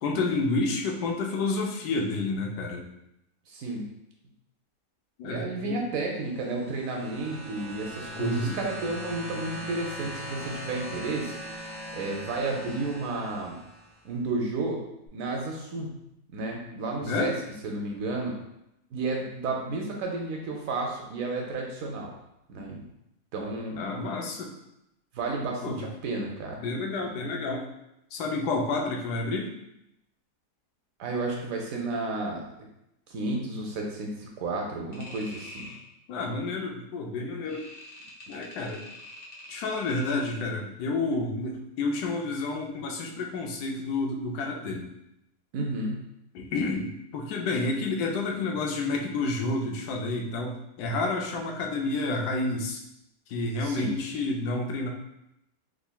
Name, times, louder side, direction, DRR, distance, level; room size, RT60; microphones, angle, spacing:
voice 1, 0.0-2.9 5.2-5.8 8.1-8.6 17.0-17.3 23.8-24.5 25.6-25.9 26.6-27.7 28.1-29.5 36.1-37.6 38.3-38.8 39.5-44.9 46.3-52.8 53.3-54.9, left 3 dB, 80° left, 1 dB, 1.1 m, -30 dB
voice 2, 3.5-3.9 5.2-11.4 11.9-13.6 14.0-14.8 15.1-16.0 16.3-17.4 17.6-18.4 18.9-22.1 22.5-22.8 23.3-23.8 25.1-26.6 31.0-32.7 33.1-35.7 45.5-46.1 53.6-53.9, right 2 dB, 70° right, 0 dB, 0.9 m, -32 dB
sound 1, 6.2-14.0 15.1-15.2, equal, 15° right, 1.2 m, -40 dB
sound 2, 34.9-35.8 37.5-40.5, left 1 dB, 50° left, 0.7 m, -45 dB
3.6 x 3.1 x 2.2 m, 0.84 s
omnidirectional pair, 1.7 m